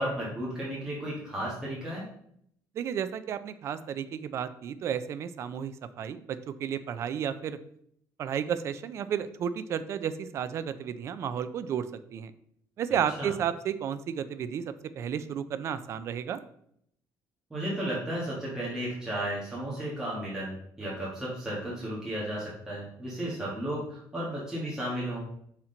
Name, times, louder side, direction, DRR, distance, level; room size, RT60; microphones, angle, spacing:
voice 1, 0.0-2.0 13.2-13.3 17.5-25.5, right 1 dB, 10° right, -7 dB, 1.4 m, -34 dB
voice 2, 2.8-7.6 8.2-11.9 12.1-12.3 12.8-16.4, right 8 dB, 40° right, 12 dB, 0.4 m, -32 dB
5.9 x 4.3 x 3.8 m, 0.68 s
cardioid pair, 165°, 7 cm